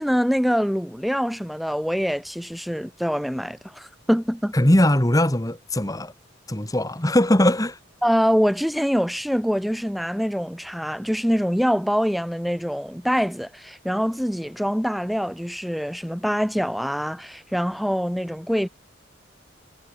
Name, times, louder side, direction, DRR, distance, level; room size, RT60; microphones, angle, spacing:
voice 1, 0.0-4.5 8.0-18.7, equal, ahead, 1.4 m, -24 dB
voice 2, 4.5-6.1 6.5-7.8, left 1 dB, 20° left, 1.8 m, -20 dB
head